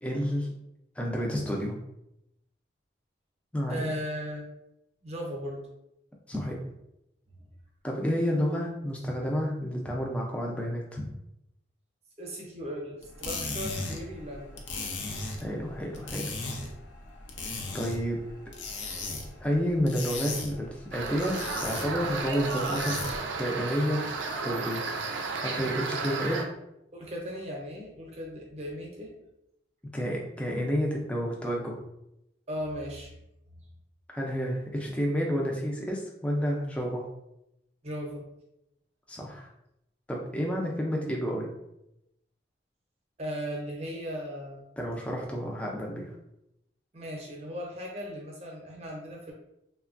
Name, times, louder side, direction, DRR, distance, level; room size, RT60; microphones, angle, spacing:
voice 1, 0.0-0.5 1.0-1.8 3.5-3.8 6.3-6.6 7.8-11.1 15.4-16.3 17.7-18.2 19.4-23.0 23.4-24.0 24.4-24.8 25.4-26.5 29.9-31.8 34.1-37.1 39.1-39.5 40.1-41.5 44.8-46.1, equal, 5° left, -2 dB, 0.4 m, -30 dB
voice 2, 3.7-4.5 5.0-5.7 7.4-7.5 12.2-14.9 26.0-26.2 26.9-29.1 32.5-33.1 37.8-38.3 43.2-44.6 46.9-49.3, equal, 35° right, 0 dB, 0.6 m, -37 dB
sound 1, 13.0-23.3, left 3 dB, 80° left, 0.5 m, -38 dB
sound 2, 20.9-26.4, right 4 dB, 90° right, 0.4 m, -33 dB
3.2 x 2.2 x 2.4 m, 0.84 s
head